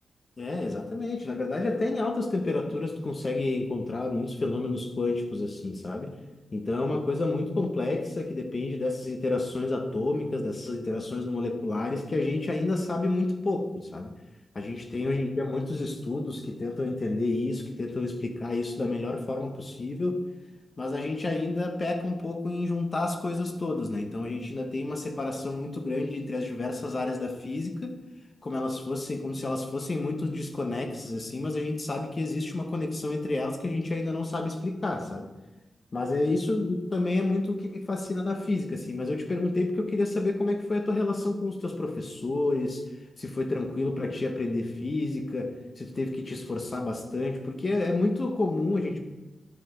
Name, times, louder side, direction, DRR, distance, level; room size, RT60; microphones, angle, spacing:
voice 1, 0.4-6.1 6.5-14.1 14.5-20.2 20.8-28.0 28.4-35.3 35.9-42.8 43.2-49.0, left 2 dB, 35° left, 4 dB, 0.8 m, -29 dB
10.5 x 4.9 x 3.8 m, 1.1 s
wide cardioid pair, 140°, 0 cm